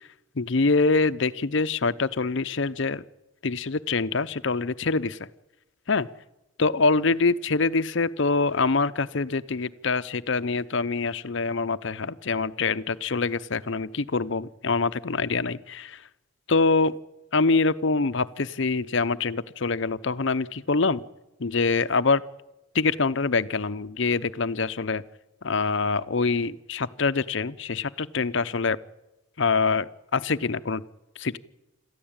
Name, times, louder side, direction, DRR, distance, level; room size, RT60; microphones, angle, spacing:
voice 1, 0.4-3.0 3.4-5.3 5.9-6.1 6.6-16.0 16.5-17.0 17.3-21.0 21.4-22.2 22.7-25.0 25.4-28.8 29.4-30.8 31.2-31.4, left 4 dB, 60° left, 14 dB, 0.7 m, -25 dB
27.0 x 14.0 x 8.8 m, 0.98 s
head